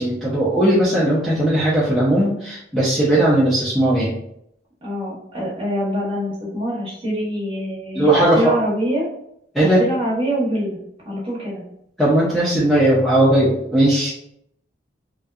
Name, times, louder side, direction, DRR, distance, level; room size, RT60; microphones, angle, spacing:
voice 1, 0.0-4.1 7.9-8.5 9.5-9.8 12.0-14.1, right 1 dB, ahead, -9 dB, 0.4 m, -17 dB
voice 2, 4.8-8.1 8.3-9.1 9.6-10.8 11.0-11.6, equal, 30° right, -6 dB, 1.0 m, -24 dB
2.6 x 2.2 x 2.3 m, 0.73 s
head